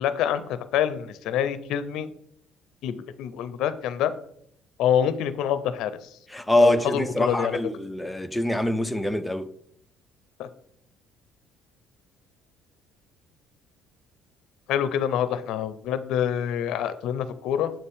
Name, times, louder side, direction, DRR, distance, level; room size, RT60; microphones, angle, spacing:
voice 1, 0.0-2.1 2.8-4.1 4.8-5.9 6.6-7.6 10.4-10.5 14.7-17.7, left 9 dB, 60° left, 0.6 m, -26 dB
voice 2, 6.3-9.5, left 1 dB, 5° left, 0.4 m, -24 dB
7.7 x 7.1 x 3.6 m
cardioid pair, 170°, 0 cm